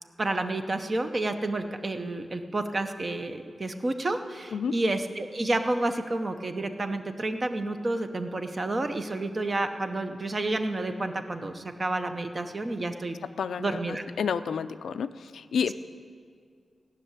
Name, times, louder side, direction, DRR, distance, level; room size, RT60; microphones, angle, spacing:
voice 1, 0.2-13.2 13.6-14.0, right 2 dB, 30° right, 7 dB, 0.8 m, -30 dB
voice 2, 13.4-15.7, left 6 dB, 90° left, 11 dB, 0.5 m, -30 dB
17.0 x 6.5 x 9.6 m, 2.1 s
wide cardioid pair, 165°, 0 cm